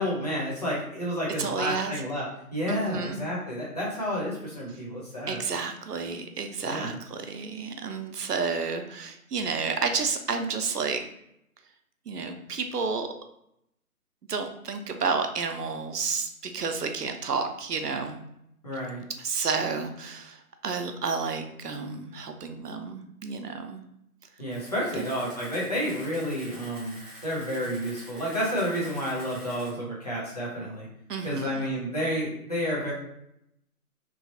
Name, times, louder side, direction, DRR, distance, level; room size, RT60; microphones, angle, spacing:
voice 1, 0.0-2.2 2.5-5.4 6.6-7.0 18.6-19.0 24.4-30.9 31.2-32.9, equal, 25° left, -7 dB, 0.7 m, -30 dB
voice 2, 1.4-1.9 2.7-3.2 5.3-11.0 12.1-13.1 14.3-18.2 19.2-20.4 20.6-23.8 25.0-25.1 31.1-31.6, right 5 dB, 90° right, 6 dB, 0.6 m, -31 dB
Camera, 24.5-29.7, equal, 30° right, 0.9 m, -47 dB
3.1 x 2.3 x 2.7 m, 0.77 s
figure-of-eight pair, 160°, 46 cm